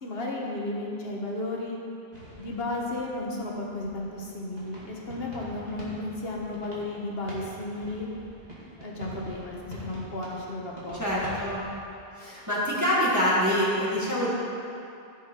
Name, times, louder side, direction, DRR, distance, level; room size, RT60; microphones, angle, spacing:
voice 1, 0.0-1.8 2.4-8.1 8.8-11.3, left 2 dB, 75° left, -2 dB, 1.6 m, -34 dB
sound 1, 2.1-11.8, equal, 40° right, 2.2 m, -45 dB
voice 2, 5.4-5.7 11.0-11.6 12.2-14.3, equal, 15° right, -8 dB, 1.9 m, -26 dB
14.5 x 5.7 x 4.5 m, 2.6 s
omnidirectional pair, 1.0 m